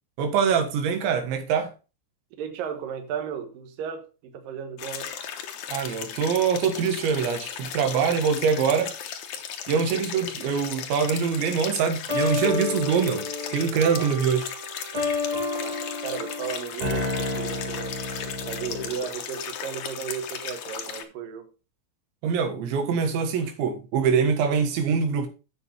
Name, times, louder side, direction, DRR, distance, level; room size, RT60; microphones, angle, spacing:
voice 1, 0.2-1.7 5.7-9.0 9.7-14.5 22.2-25.3, right 6 dB, 85° right, 3.9 m, -24 dB
voice 2, 2.4-5.2 9.7-10.2 14.0-14.1 15.6-18.0 18.5-21.5, right 8 dB, 65° right, 2.6 m, -35 dB
sound 1, 4.8-21.0, left 8 dB, 85° left, 1.6 m, -36 dB
sound 2, 12.1-19.0, left 2 dB, 35° right, 3.1 m, -31 dB
8.5 x 7.1 x 4.4 m
omnidirectional pair, 5.1 m